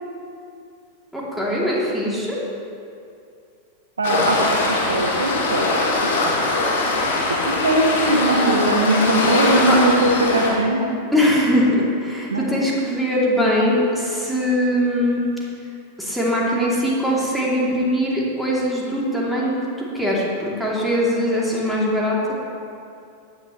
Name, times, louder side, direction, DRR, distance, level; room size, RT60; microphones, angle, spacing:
voice 1, 1.1-2.4 9.7-9.8 11.1-15.2 16.0-22.3, equal, ahead, -6 dB, 2.7 m, -21 dB
Waves surf, 4.0-10.5, left 2 dB, 55° left, 2.1 m, -21 dB
voice 2, 4.0-5.7 6.0-6.1 7.4-10.8 12.3-12.5, right 1 dB, 75° right, 0 dB, 1.3 m, -20 dB
16.0 x 10.0 x 3.1 m, 2.5 s
figure-of-eight pair, 90°, 0 cm